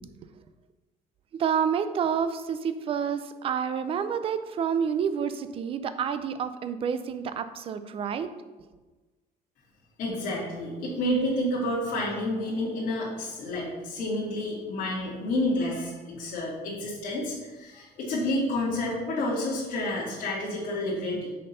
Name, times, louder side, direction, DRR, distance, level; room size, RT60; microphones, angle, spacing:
voice 1, 1.3-8.3, right 7 dB, 35° right, 10 dB, 0.4 m, -29 dB
voice 2, 10.0-21.3, left 1 dB, 55° left, -7 dB, 2.1 m, -29 dB
6.4 x 4.4 x 5.4 m, 1.2 s
cardioid pair, 160°, 16 cm